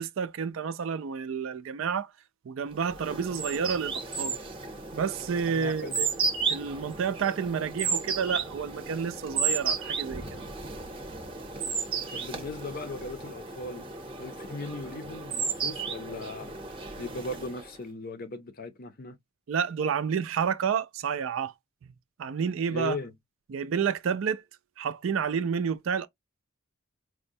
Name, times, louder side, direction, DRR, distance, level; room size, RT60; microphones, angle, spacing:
voice 1, 0.0-2.1 2.4-4.4 4.9-6.1 6.5-10.4 19.5-21.5 22.2-23.0 23.5-24.4 24.8-26.1, right 6 dB, 65° right, 0.4 m, -30 dB
sound 1, 2.8-17.8, right 5 dB, 25° right, 0.7 m, -34 dB
voice 2, 5.5-6.0 12.1-13.9 14.2-16.5 17.0-19.2 22.7-23.1, left 2 dB, 45° left, 0.6 m, -38 dB
4.7 x 2.1 x 2.6 m
head